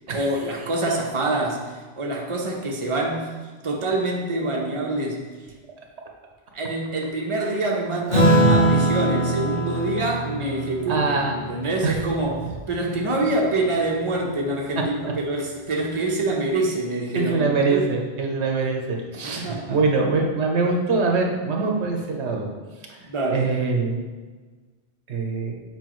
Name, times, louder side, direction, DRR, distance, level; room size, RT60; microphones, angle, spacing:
voice 1, 0.1-1.6 2.0-3.3 3.6-5.2 6.5-17.8 19.2-19.8 23.0-23.4, right 2 dB, 30° right, -1 dB, 0.9 m, -26 dB
Acoustic guitar / Strum, 8.1-12.9, right 1 dB, 50° left, 1.6 m, -22 dB
voice 2, 8.3-8.7 10.9-11.4 11.8-12.0 17.1-22.5 22.9-23.0 23.3-24.0 25.1-25.6, right 4 dB, 80° right, 1 dB, 1.2 m, -23 dB
7.4 x 5.0 x 3.1 m, 1.3 s
omnidirectional pair, 1.1 m